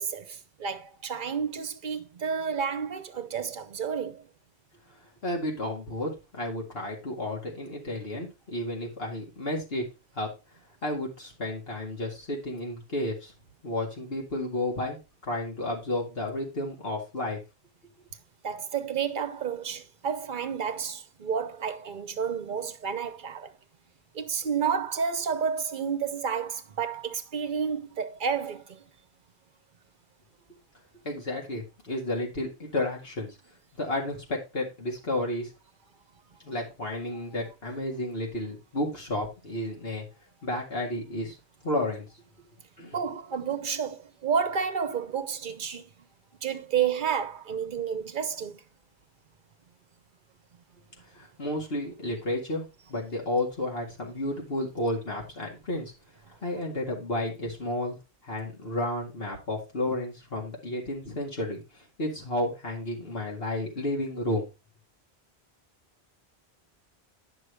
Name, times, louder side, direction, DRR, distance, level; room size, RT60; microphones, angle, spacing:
voice 1, 0.0-4.2 18.4-23.5 24.1-28.8 42.9-45.8 46.4-48.6, right 7 dB, 50° right, 1.0 m, -30 dB
voice 2, 5.2-9.9 10.1-10.3 10.8-13.3 13.6-15.0 15.2-17.4 31.0-33.4 33.7-35.5 36.4-40.1 40.4-41.4 41.6-42.1 42.8-43.0 51.1-55.9 56.4-58.0 58.2-64.5, left 1 dB, 65° left, 2.2 m, -32 dB
9.7 x 6.1 x 3.3 m
omnidirectional pair, 1.1 m